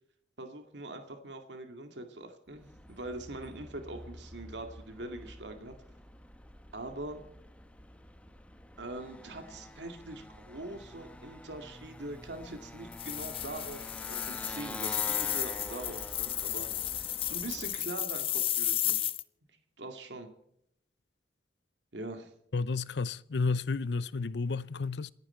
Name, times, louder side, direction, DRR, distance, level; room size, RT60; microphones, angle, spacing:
voice 1, 0.4-5.7 6.7-7.2 8.8-13.8 14.1-16.7 17.3-19.1 19.8-20.3 21.9-22.3, right 2 dB, 80° right, 2.2 m, -43 dB
Motorcycle, 2.5-17.9, left 1 dB, 5° left, 1.0 m, -47 dB
sound 1, 12.9-19.2, left 12 dB, 30° left, 0.6 m, -33 dB
voice 2, 22.5-25.1, left 4 dB, 70° left, 0.6 m, -31 dB
27.5 x 9.8 x 4.4 m
head